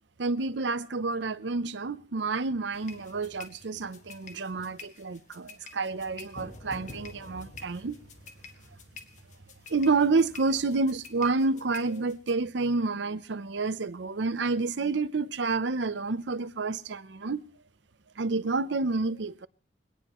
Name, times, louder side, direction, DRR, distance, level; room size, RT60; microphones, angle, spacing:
voice 1, 0.2-8.0 9.7-17.4 18.2-19.5, right 3 dB, 85° right, 0.7 m, -29 dB
sound 1, 2.7-12.3, left 3 dB, 40° left, 1.7 m, -48 dB
22.0 x 17.5 x 3.1 m
head